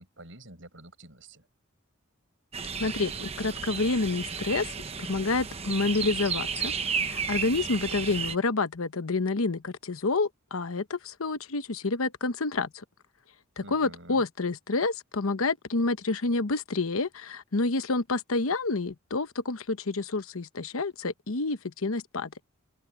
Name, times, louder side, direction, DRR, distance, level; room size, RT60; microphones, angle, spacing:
voice 1, 0.0-1.5 13.6-14.2, right 1 dB, 65° right, 7.2 m, -48 dB
sound 1, 2.5-8.4, right 6 dB, 30° right, 1.0 m, -33 dB
voice 2, 2.8-4.7 5.0-6.7 7.0-12.8 13.6-22.3, left 3 dB, 85° left, 1.0 m, -28 dB
open air
head